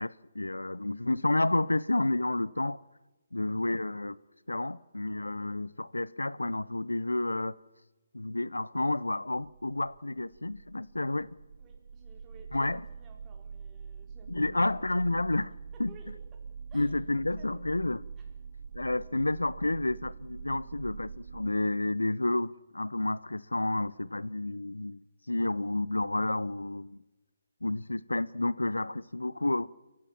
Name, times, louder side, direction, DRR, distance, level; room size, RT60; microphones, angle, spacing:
voice 1, 0.0-2.8 3.3-4.2 4.5-7.6 8.1-11.3 12.5-12.8 14.3-15.9 16.7-18.0 18.7-25.0 25.3-27.0 27.6-29.7, left 2 dB, 90° left, 0.7 m, -30 dB
sound 1, 9.3-21.6, right 6 dB, 55° right, 0.8 m, -45 dB
voice 2, 11.6-14.7 15.7-16.4 16.7-17.6 18.2-18.3, right 4 dB, 20° right, 4.5 m, -57 dB
29.0 x 15.0 x 7.3 m
figure-of-eight pair, 145°, 0 cm